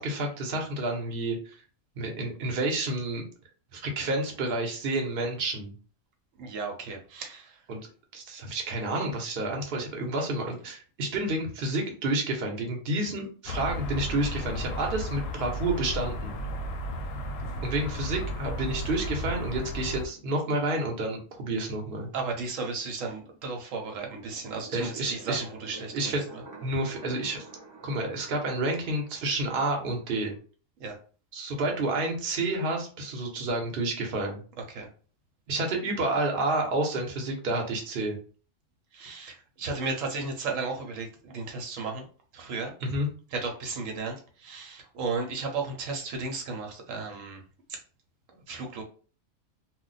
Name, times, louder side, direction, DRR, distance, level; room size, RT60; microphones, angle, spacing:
voice 1, 0.0-1.6 2.0-3.2 3.7-5.7 7.7-7.8 8.1-16.3 17.6-22.1 24.7-25.4 25.9-26.2 26.6-27.4 27.8-30.3 31.3-34.4 35.5-38.2 42.8-43.1, right 2 dB, 50° right, 1 dB, 1.0 m, -29 dB
voice 2, 6.4-7.6 22.1-26.1 30.8-31.0 34.7-34.9 38.9-42.1 42.3-42.7 43.3-47.4 47.7-47.8 48.3-48.8, right 4 dB, 85° right, 2 dB, 1.1 m, -34 dB
sound 1, 13.4-20.1, left 1 dB, 65° left, 0.7 m, -34 dB
sound 2, 23.8-30.4, right 3 dB, 30° right, 0.4 m, -49 dB
2.4 x 2.1 x 3.9 m, 0.39 s
omnidirectional pair, 1.3 m